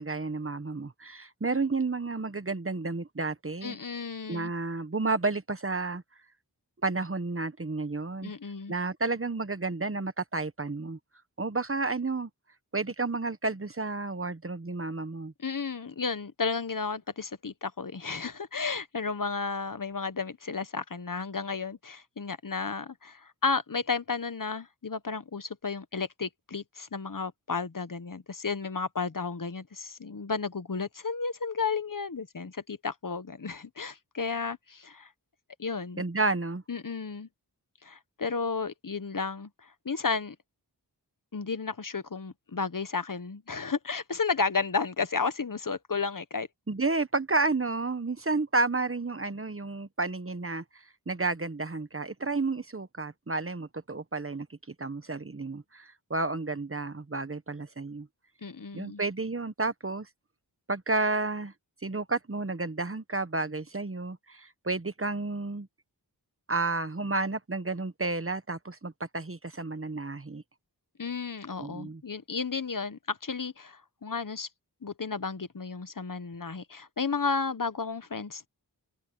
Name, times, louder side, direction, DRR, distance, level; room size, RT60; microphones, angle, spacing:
voice 1, 0.0-3.8 4.3-6.0 6.8-8.3 8.7-11.0 11.4-12.3 12.7-15.3 36.0-36.6 46.7-54.5 54.8-58.1 58.7-60.1 60.7-61.5 61.8-65.7 66.5-70.4 71.6-72.0, right 3 dB, 30° right, 1.2 m, -31 dB
voice 2, 3.6-4.5 8.2-8.7 15.4-35.1 35.6-36.0 36.7-37.3 37.8-40.3 41.3-46.5 58.4-59.0 71.0-74.5 74.8-78.5, left 4 dB, 50° left, 1.2 m, -33 dB
open air
wide cardioid pair, 45°, 41 cm